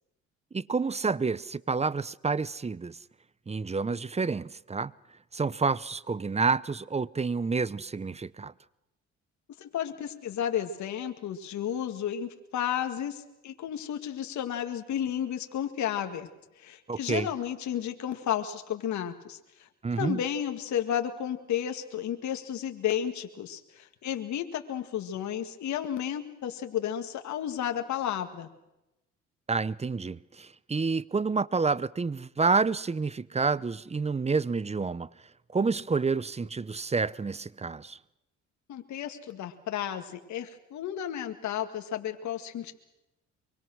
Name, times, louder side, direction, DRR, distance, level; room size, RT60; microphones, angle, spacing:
voice 1, 0.5-3.0 3.5-4.9 5.3-8.5 16.9-17.3 19.8-20.2 29.5-35.1 35.5-38.0, right 4 dB, 20° right, 0.8 m, -29 dB
voice 2, 9.6-16.3 16.6-19.7 20.0-28.5 38.7-42.7, left 10 dB, 70° left, 2.0 m, -32 dB
24.0 x 24.0 x 6.3 m
supercardioid pair, 70°, 30 cm